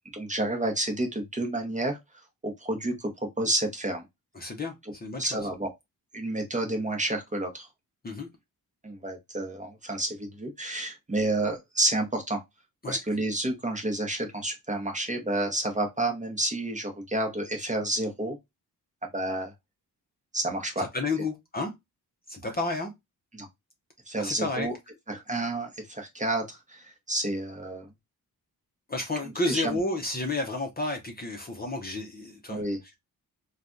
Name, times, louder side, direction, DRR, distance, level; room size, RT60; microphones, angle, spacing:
voice 1, 0.1-2.0 2.4-4.0 5.2-5.7 6.1-7.7 8.8-12.4 12.9-18.4 19.1-19.5 20.3-20.9 23.3-23.5 24.1-24.7 25.1-27.9 29.5-29.8 32.5-32.8, right 1 dB, 20° right, 0.8 m, -30 dB
voice 2, 4.3-5.4 8.0-8.3 12.8-13.0 20.8-21.7 22.3-22.9 24.2-24.7 28.9-32.6, left 2 dB, 25° left, 0.6 m, -31 dB
3.2 x 2.3 x 2.5 m
wide cardioid pair, 120°, 36 cm